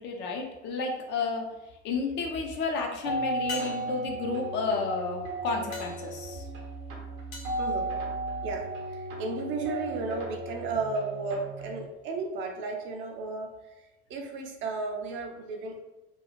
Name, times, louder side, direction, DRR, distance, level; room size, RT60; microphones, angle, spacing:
voice 1, 0.0-1.4 1.8-6.4, left 4 dB, 30° left, 1 dB, 0.4 m, -31 dB
sound 1, 1.2-1.8 3.5-8.6 13.1-13.2, left 4 dB, 65° left, 0.8 m, -46 dB
sound 2, 3.0-11.8, right 2 dB, 60° right, 0.7 m, -35 dB
voice 2, 7.6-7.9 8.4-15.8, right 3 dB, 35° right, 2 dB, 0.5 m, -34 dB
2.7 x 2.3 x 2.8 m, 1.0 s
figure-of-eight pair, 70°, 35 cm